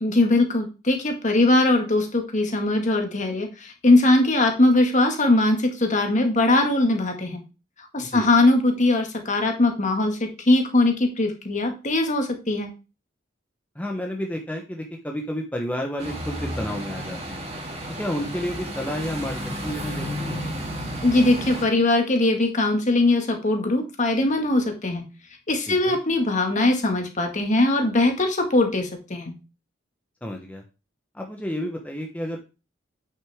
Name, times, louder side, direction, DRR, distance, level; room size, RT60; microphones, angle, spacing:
voice 1, 0.0-7.4 7.9-12.7 21.0-25.0 25.5-29.3, left 2 dB, 40° left, 4 dB, 1.8 m, -21 dB
voice 2, 8.0-8.3 13.7-17.4 17.9-20.4 25.7-26.0 30.2-30.6 31.1-32.4, equal, 10° left, 2 dB, 0.9 m, -31 dB
sound 1, 16.0-21.6, equal, 35° right, 2.3 m, -32 dB
9.0 x 6.2 x 3.6 m, 0.31 s
head